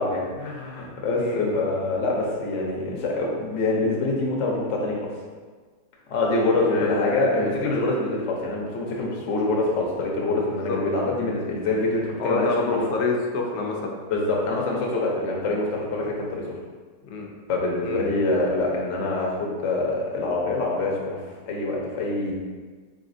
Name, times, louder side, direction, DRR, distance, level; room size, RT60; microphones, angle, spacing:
voice 1, 0.0-5.1 6.1-12.8 14.1-16.5 17.5-21.2 21.5-22.3, left 2 dB, 55° left, -2 dB, 0.9 m, -25 dB
voice 2, 1.2-1.6 6.6-7.5 10.5-10.8 12.2-13.9 17.1-17.3 17.8-18.3, left 3 dB, 85° left, 0 dB, 1.2 m, -27 dB
3.9 x 3.5 x 2.6 m, 1.4 s
omnidirectional pair, 1.8 m